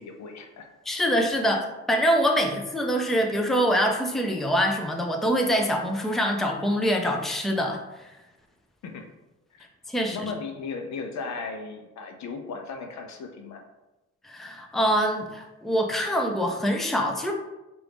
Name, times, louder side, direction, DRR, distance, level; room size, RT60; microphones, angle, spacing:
voice 1, 0.0-0.7 8.8-9.1 10.1-13.6, left 4 dB, 65° left, 5 dB, 0.7 m, -36 dB
voice 2, 0.9-8.1 9.9-10.2 14.2-17.3, equal, ahead, 2 dB, 0.5 m, -25 dB
4.4 x 2.6 x 3.5 m, 1.0 s
cardioid pair, 90°, 30 cm